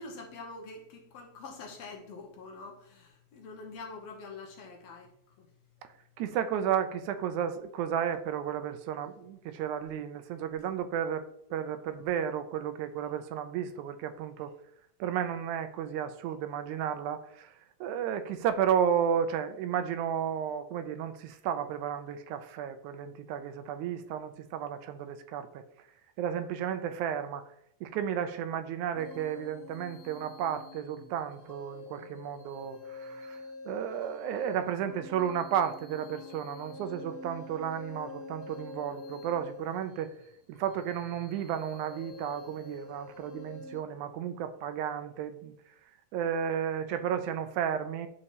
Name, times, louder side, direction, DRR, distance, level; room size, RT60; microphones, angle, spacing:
voice 1, 0.0-5.1 5.4-5.5, left 3 dB, 70° left, 2.0 m, -45 dB
voice 2, 6.2-14.5 15.0-25.6 26.2-27.5 27.8-40.1 40.5-45.5 46.1-48.1, right 9 dB, 80° right, 2.0 m, -33 dB
sound 1, 28.9-43.8, left 3 dB, 35° left, 1.6 m, -47 dB
11.0 x 4.3 x 2.9 m
omnidirectional pair, 3.5 m